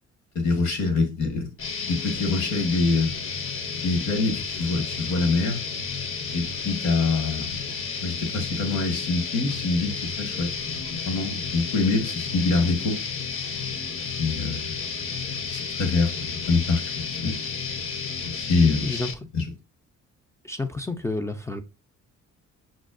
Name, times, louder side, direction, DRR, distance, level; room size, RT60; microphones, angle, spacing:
voice 1, 0.3-1.5 1.8-3.2 3.7-5.6 6.3-7.6 8.0-13.0 14.1-15.0 15.4-17.4 18.3-19.0 19.3-19.5, left 3 dB, 65° left, 1.1 m, -25 dB
sound 1, 1.6-19.1, left 5 dB, 45° left, 0.6 m, -32 dB
voice 2, 20.4-21.6, left 2 dB, 10° left, 0.3 m, -29 dB
5.9 x 2.0 x 2.4 m
cardioid pair, 90°, 30 cm